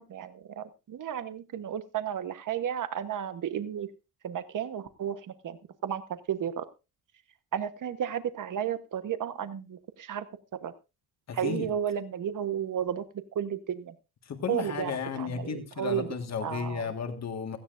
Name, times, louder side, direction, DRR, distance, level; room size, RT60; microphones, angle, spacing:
voice 1, 0.0-3.9 4.2-5.6 5.8-6.0 6.3-6.7 7.5-10.2 10.6-10.7 11.3-13.0 13.3-13.9 14.5-16.1 16.4-16.8, right 9 dB, 55° right, 11 dB, 1.1 m, -33 dB
voice 2, 11.3-11.7 14.2-17.6, left 6 dB, 45° left, 6 dB, 1.7 m, -34 dB
17.0 x 15.5 x 2.5 m, 0.28 s
wide cardioid pair, 155°, 37 cm